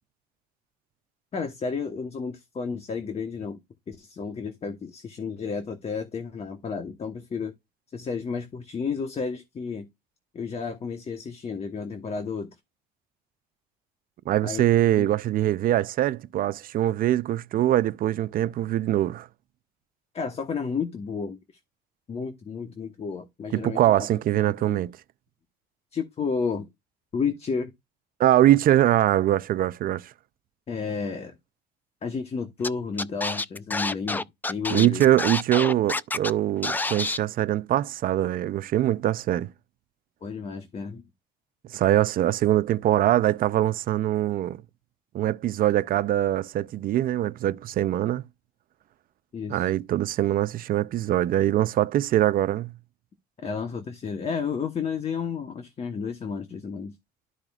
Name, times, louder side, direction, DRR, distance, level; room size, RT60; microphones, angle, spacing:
voice 1, 1.3-3.6 3.9-7.5 7.9-9.9 10.3-12.5 14.4-14.6 14.9-15.1 20.1-21.4 22.1-24.1 24.6-24.8 25.9-26.7 27.1-27.7 30.7-31.4 32.0-35.0 40.2-41.0 49.3-49.7 53.4-56.9, left 5 dB, 35° left, 1.2 m, -32 dB
voice 2, 14.3-19.3 23.5-24.9 28.2-30.1 34.7-39.5 41.7-44.6 45.1-48.2 49.5-52.7, right 13 dB, 60° right, 0.5 m, -23 dB
Scratching (performance technique), 32.6-32.7 33.0-36.3 36.6-37.2, left 2 dB, 10° left, 0.3 m, -28 dB
12.5 x 4.8 x 2.4 m
cardioid pair, 110°, 17 cm